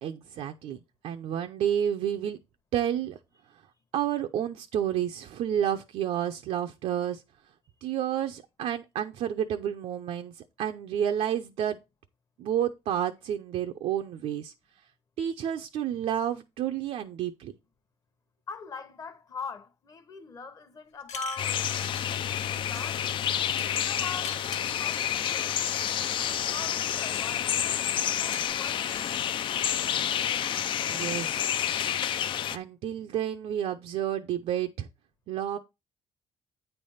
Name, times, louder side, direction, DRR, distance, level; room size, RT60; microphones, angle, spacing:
voice 1, 0.0-0.8 1.0-2.4 2.7-3.2 3.9-7.2 7.8-11.8 12.4-14.5 15.2-17.5 30.9-31.8 32.5-34.9 35.3-35.6, right 10 dB, 65° right, 0.6 m, -30 dB
voice 2, 18.5-21.6 22.1-22.4 22.7-23.1 23.6-25.5 26.5-29.2, left 4 dB, 30° left, 0.9 m, -42 dB
sound 1, 21.0-22.5 22.7-23.1 23.6-25.1 25.7-26.3 26.8-27.8 28.3-29.2, left 6 dB, 90° left, 1.2 m, -43 dB
sound 2, 21.4-32.6, left 10 dB, 45° left, 0.4 m, -29 dB
9.1 x 3.4 x 5.5 m
cardioid pair, 165°, 11 cm